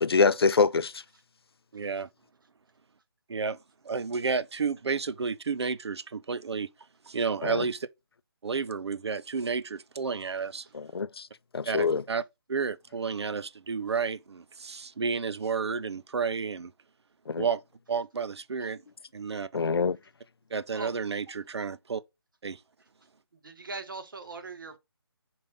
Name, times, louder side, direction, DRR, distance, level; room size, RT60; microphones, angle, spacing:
voice 1, 0.0-1.0 7.4-7.6 10.7-11.3 11.5-12.0 17.3-17.5 19.5-20.0, left 4 dB, 70° left, 0.5 m, -25 dB
voice 2, 1.7-2.1 3.3-3.6 3.8-6.7 7.1-7.9 8.4-10.7 11.7-12.2 12.5-16.7 17.4-17.6 17.9-18.8 19.1-19.5 20.5-22.0 22.4-22.6, right 5 dB, 85° right, 0.6 m, -31 dB
voice 3, 23.4-24.8, right 3 dB, 55° right, 1.5 m, -40 dB
5.2 x 4.3 x 5.3 m
hypercardioid pair, 180°, 14 cm